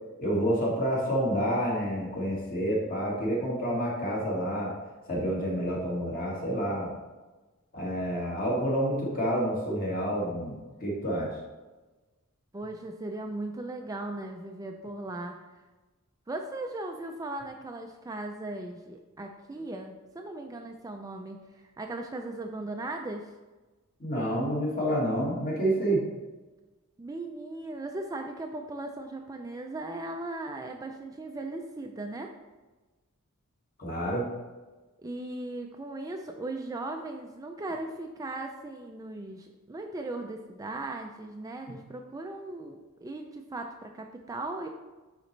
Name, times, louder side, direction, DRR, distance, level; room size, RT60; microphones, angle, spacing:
voice 1, 0.2-4.7 5.1-6.9 7.7-11.3 24.0-26.0 33.8-34.3, equal, 40° left, -3 dB, 1.8 m, -28 dB
voice 2, 12.5-15.4 16.3-23.3 27.0-32.3 35.0-44.7, right 2 dB, 15° right, 3 dB, 0.3 m, -38 dB
9.0 x 4.0 x 3.2 m, 1.2 s
head